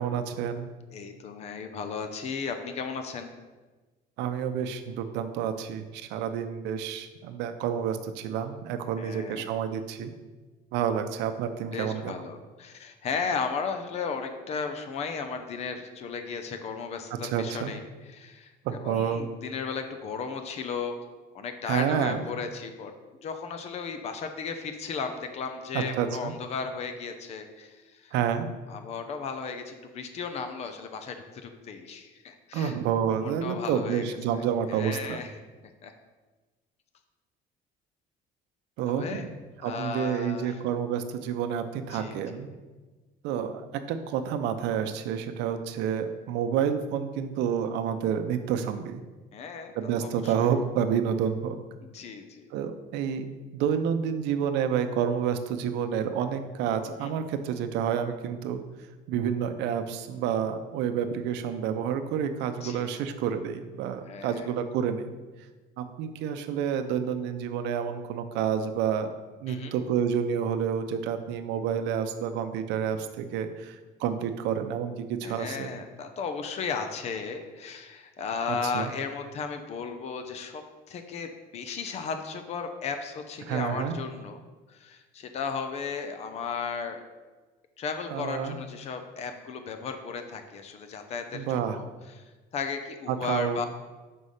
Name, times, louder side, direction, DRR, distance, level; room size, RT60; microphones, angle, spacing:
voice 1, 0.0-0.7 4.2-10.1 10.7-12.1 17.2-17.7 18.6-19.2 21.6-22.2 25.7-26.3 28.1-28.5 32.5-35.2 38.8-39.3 39.6-42.5 43.2-49.0 49.7-51.6 52.5-53.3 53.5-58.6 59.1-65.1 65.8-69.1 69.4-75.7 78.5-78.9 83.5-83.9 88.1-88.5 91.3-91.8 93.1-93.7, right 8 dB, 85° right, 8 dB, 0.7 m, -29 dB
voice 2, 0.9-3.3 9.0-9.5 11.7-21.0 21.3-22.9 23.2-28.1 28.7-32.8 33.2-34.2 34.7-35.3 35.8-35.9 38.9-39.3 39.6-40.6 41.9-42.2 49.3-50.3 51.9-52.5 56.9-57.1 62.6-62.9 64.0-64.5 69.5-69.7 75.2-80.6 80.9-84.4 84.7-87.0 87.8-91.9 92.2-92.3 92.5-93.7, left 5 dB, 40° left, 7 dB, 0.7 m, -35 dB
5.6 x 5.4 x 6.5 m, 1.3 s
cardioid pair, 165°, 17 cm